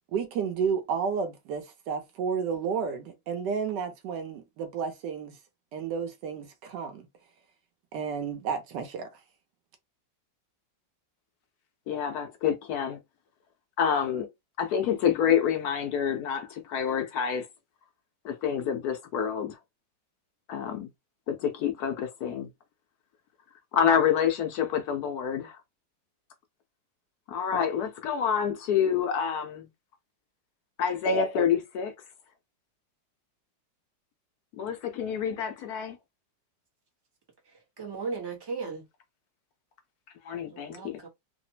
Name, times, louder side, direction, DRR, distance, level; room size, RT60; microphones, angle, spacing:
voice 1, 0.1-5.4 5.7-7.1 7.9-9.1, right 6 dB, 75° right, 1.2 m, -31 dB
voice 2, 11.9-13.0 13.8-14.3 14.6-17.5 18.2-19.6 20.5-20.9 21.3-22.5 23.7-25.6 27.3-29.7 30.8-31.9 34.6-36.0 40.2-41.0, left 7 dB, 70° left, 0.9 m, -27 dB
voice 3, 37.5-38.9 40.5-41.1, right 4 dB, 30° right, 0.4 m, -37 dB
3.2 x 2.0 x 2.7 m
omnidirectional pair, 2.0 m